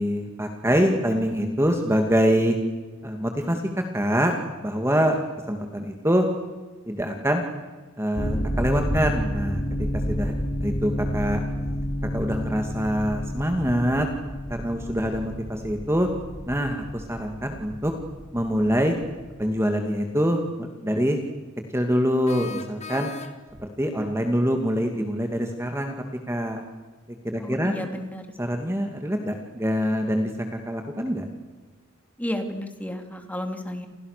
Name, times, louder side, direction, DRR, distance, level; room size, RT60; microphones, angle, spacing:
voice 1, 0.0-2.6 3.0-3.6 3.9-4.3 4.6-5.2 5.5-6.3 6.9-7.4 8.0-9.6 10.1-10.3 10.6-11.4 12.1-14.1 14.5-16.1 16.5-17.9 18.3-19.0 19.4-21.2 21.7-23.1 23.6-25.9 26.3-26.6 27.2-27.7 28.4-30.3 30.7-31.3, equal, 10° right, 4 dB, 2.3 m, -24 dB
sound 1, 8.1-19.5, equal, 50° left, 5.4 m, -30 dB
sound 2, 22.2-23.7, left 5 dB, 30° left, 2.3 m, -39 dB
voice 2, 27.4-28.3 32.2-33.9, left 1 dB, 5° left, 6 dB, 2.9 m, -32 dB
29.5 x 28.5 x 6.7 m, 1.3 s
head